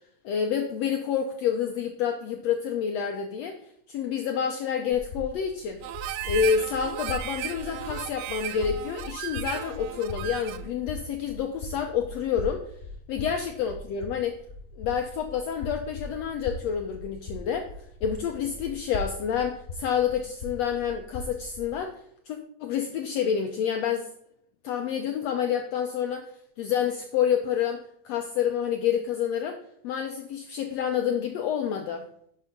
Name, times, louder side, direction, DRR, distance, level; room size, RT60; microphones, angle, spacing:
voice 1, 0.2-3.6 3.9-5.8 6.2-12.7 13.1-14.4 14.8-17.7 18.0-24.1 24.6-26.3 26.6-32.0, left 8 dB, 85° left, 4 dB, 1.5 m, -28 dB
sound 1, 4.9-21.7, left 2 dB, 15° left, 3.9 m, -40 dB
Harmonica, 5.8-10.7, right 12 dB, 85° right, 2.3 m, -36 dB
11.5 x 5.5 x 5.2 m, 0.66 s
omnidirectional pair, 3.9 m